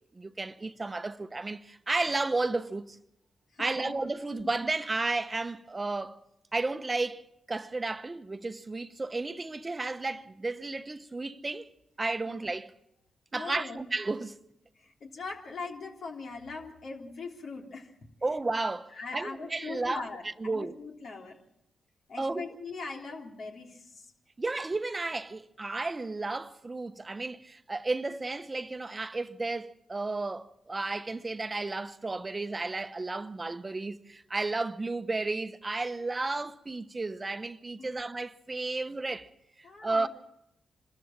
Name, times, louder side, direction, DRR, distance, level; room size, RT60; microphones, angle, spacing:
voice 1, 0.1-3.0 3.6-6.2 6.5-11.7 12.0-12.7 13.3-14.4 18.2-20.0 20.4-20.7 22.2-22.4 24.4-39.3 39.6-40.1, right 3 dB, 30° right, 0.9 m, -33 dB
voice 2, 3.5-3.9 4.4-4.5 12.3-12.4 13.3-13.8 14.7-17.9 18.9-21.4 22.1-24.1 37.8-37.9 39.6-40.1, left 4 dB, 70° left, 3.4 m, -41 dB
25.5 x 13.5 x 7.5 m
supercardioid pair, 55°, 0 cm